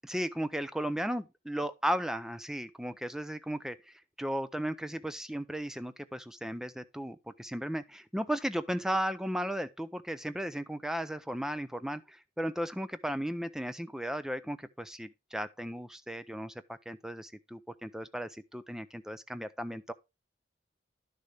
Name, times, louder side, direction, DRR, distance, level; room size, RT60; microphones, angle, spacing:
voice 1, 0.1-3.8 4.2-19.9, equal, 5° right, 0.5 m, -35 dB
11.0 x 6.6 x 3.4 m
head